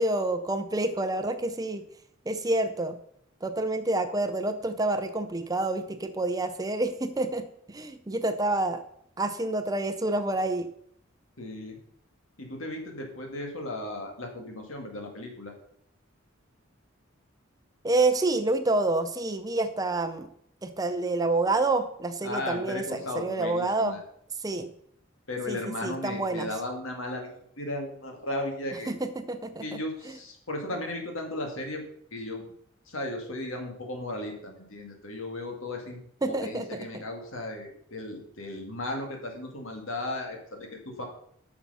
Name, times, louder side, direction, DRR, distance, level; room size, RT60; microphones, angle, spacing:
voice 1, 0.0-1.8 2.3-3.0 3.4-8.8 9.2-10.7 17.8-20.3 20.6-24.0 24.4-24.7 25.5-25.6 25.8-26.5 28.9-29.8 36.2-36.9, right 2 dB, 20° right, 9 dB, 0.5 m, -28 dB
voice 2, 11.4-11.8 12.4-15.5 22.2-24.0 25.3-28.9 29.6-31.8 32.1-32.4 32.9-36.0 36.3-41.1, left 1 dB, 75° left, 2 dB, 2.1 m, -36 dB
8.3 x 6.0 x 5.6 m, 0.69 s
head